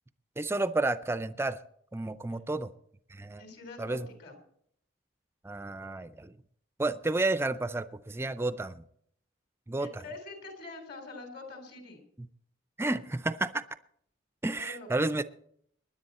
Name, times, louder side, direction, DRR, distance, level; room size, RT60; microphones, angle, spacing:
voice 1, 0.4-1.6 1.9-2.7 3.1-3.4 3.8-4.1 5.4-6.3 6.8-8.8 9.7-10.0 12.2-12.3 12.8-13.6 14.4-15.2, right 2 dB, 10° right, 14 dB, 0.4 m, -31 dB
voice 2, 3.4-4.4 9.8-12.1 14.6-14.9, left 3 dB, 50° left, 5 dB, 3.6 m, -45 dB
20.0 x 10.5 x 4.2 m, 0.68 s
head